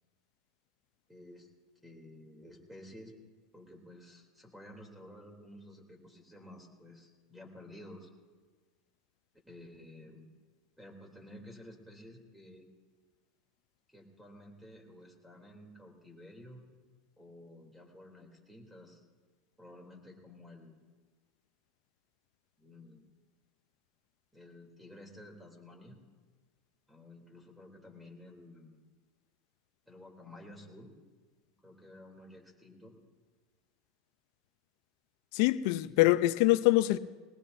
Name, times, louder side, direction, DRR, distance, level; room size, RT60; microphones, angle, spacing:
voice 1, 1.1-1.5 1.8-3.2 3.5-8.1 9.5-10.2 10.8-12.6 13.9-16.7 17.2-19.1 19.6-20.7 22.6-23.0 24.3-26.0 26.9-28.8 29.9-30.9 31.6-33.0, left 1 dB, 5° right, 3.3 m, -52 dB
voice 2, 35.3-37.0, left 17 dB, 65° left, 0.7 m, -24 dB
21.0 x 19.5 x 2.7 m
supercardioid pair, 120°, 2 cm